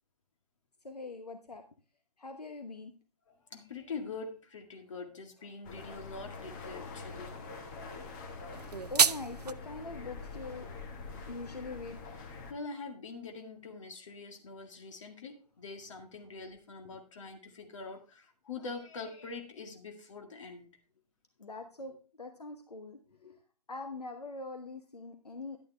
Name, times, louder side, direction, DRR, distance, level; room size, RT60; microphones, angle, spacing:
voice 1, 0.8-1.6 2.2-2.9 8.9-10.7 11.3-12.0 21.4-23.4 23.7-25.6, left 3 dB, 75° left, 6 dB, 1.1 m, -43 dB
voice 2, 3.3-7.3 12.2-20.7, left 4 dB, 50° left, 5 dB, 2.0 m, -44 dB
sound 1, 5.6-12.5, left 4 dB, 30° left, 1.5 m, -45 dB
sound 2, 8.5-9.5, right 5 dB, 80° right, 0.5 m, -27 dB
11.0 x 9.4 x 3.3 m, 0.35 s
figure-of-eight pair, 130°, 20 cm